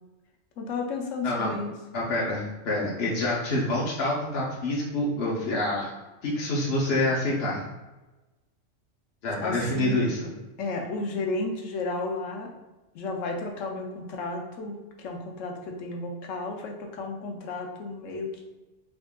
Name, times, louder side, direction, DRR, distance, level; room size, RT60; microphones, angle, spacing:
voice 1, 0.6-1.7 9.4-10.0 10.6-12.5 12.9-18.4, left 3 dB, 90° left, 2 dB, 1.0 m, -33 dB
voice 2, 1.9-5.9 6.2-7.7 9.2-10.2, left 1 dB, 60° left, -5 dB, 0.9 m, -27 dB
3.5 x 3.5 x 2.2 m, 1.1 s
omnidirectional pair, 1.3 m